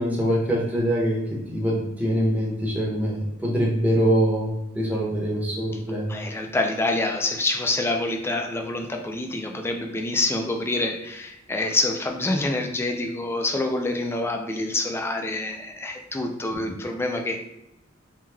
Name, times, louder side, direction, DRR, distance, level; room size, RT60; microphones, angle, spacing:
voice 1, 0.0-6.1 16.6-16.7, equal, 10° right, -4 dB, 1.0 m, -24 dB
voice 2, 6.1-17.4, left 2 dB, 10° left, 3 dB, 0.4 m, -26 dB
3.0 x 2.8 x 3.5 m, 0.86 s
head